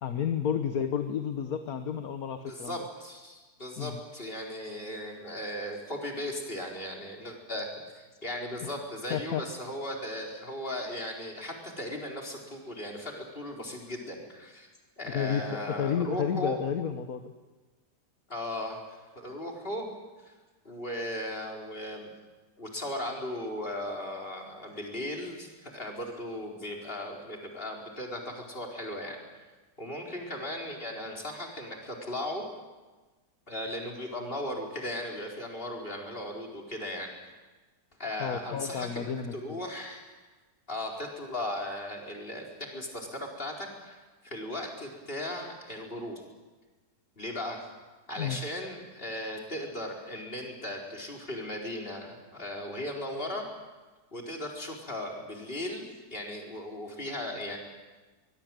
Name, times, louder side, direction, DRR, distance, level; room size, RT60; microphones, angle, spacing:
voice 1, 0.0-2.8 3.8-4.0 8.6-8.7 9.1-9.4 15.1-17.3 38.2-39.6 48.2-48.4, left 8 dB, 65° left, 8 dB, 1.6 m, -31 dB
voice 2, 2.4-14.7 15.0-16.6 18.3-19.9 20.2-20.3 20.6-22.1 22.6-29.2 29.8-32.4 33.5-37.1 38.0-40.1 40.7-46.2 47.2-47.7 48.1-53.4 54.1-57.6, left 1 dB, 35° left, 0 dB, 4.7 m, -37 dB
24.0 x 21.5 x 9.1 m, 1.3 s
omnidirectional pair, 1.7 m